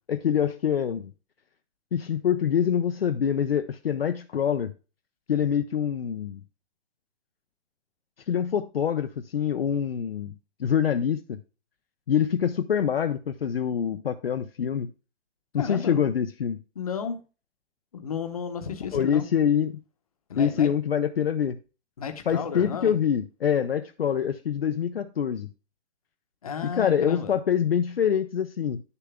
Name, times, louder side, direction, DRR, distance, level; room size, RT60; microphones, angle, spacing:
voice 1, 0.1-1.1 1.9-4.7 5.3-6.4 8.3-10.3 10.6-11.4 12.1-14.9 15.5-16.6 18.9-19.8 20.4-21.6 22.3-25.5 26.6-28.8, left 8 dB, 55° left, 0.6 m, -25 dB
voice 2, 15.6-16.1 16.7-17.2 17.9-19.2 20.3-20.7 22.0-22.9 26.4-27.3, left 7 dB, 30° left, 1.0 m, -33 dB
10.0 x 6.8 x 3.6 m
hypercardioid pair, 175°, 36 cm